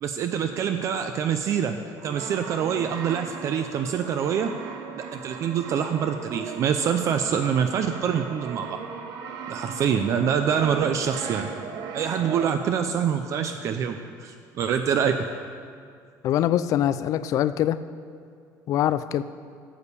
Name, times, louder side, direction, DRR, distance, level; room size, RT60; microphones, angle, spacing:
voice 1, 0.0-1.8 2.0-4.5 5.1-8.8 9.5-11.4 11.9-15.2, right 7 dB, 45° right, 7 dB, 0.5 m, -25 dB
Brass instrument, 2.0-12.8, right 6 dB, 65° right, 1.0 m, -38 dB
voice 2, 16.2-17.8 18.7-19.2, left 11 dB, 50° left, 14 dB, 0.4 m, -23 dB
12.5 x 7.2 x 6.8 m, 2.2 s
cardioid pair, 165°, 7 cm